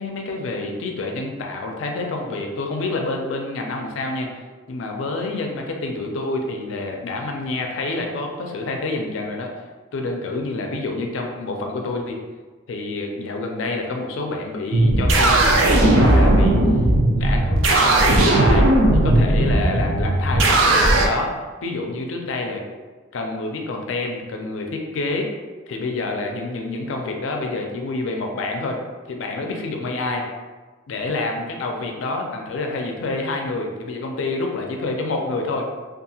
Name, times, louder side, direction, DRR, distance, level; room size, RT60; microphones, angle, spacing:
voice 1, 0.0-4.3 4.7-9.5 9.9-12.2 12.7-16.6 17.1-21.3 21.6-22.6 23.1-25.3 25.7-28.8 29.1-30.3 30.9-35.7, left 2 dB, 75° left, 2 dB, 0.4 m, -27 dB
sound 1, 14.7-21.1, right 1 dB, 80° right, 0.4 m, -16 dB
2.7 x 2.4 x 2.7 m, 1.4 s
head